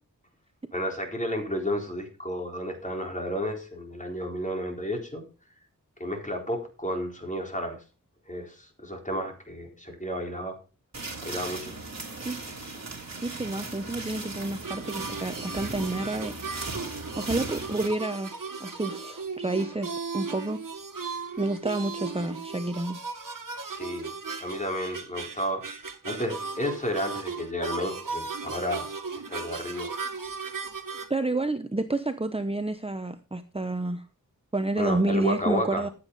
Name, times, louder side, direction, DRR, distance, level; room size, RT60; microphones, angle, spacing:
voice 1, 0.7-5.2 6.0-7.8 8.3-10.6 11.2-11.8 23.5-24.1 24.4-28.9 29.3-29.9 34.8-35.9, equal, 25° left, 2 dB, 4.2 m, -32 dB
sound 1, 10.9-17.9, right 3 dB, 55° right, 3.2 m, -37 dB
voice 2, 13.2-16.3 17.2-18.3 18.6-20.6 21.4-23.0 31.1-34.0 34.5-35.9, right 2 dB, 15° right, 8 dB, 0.8 m, -29 dB
sound 2, 14.6-31.1, right 4 dB, 75° right, 1.8 m, -37 dB
15.0 x 8.3 x 4.0 m, 0.33 s
wide cardioid pair, 80°, 33 cm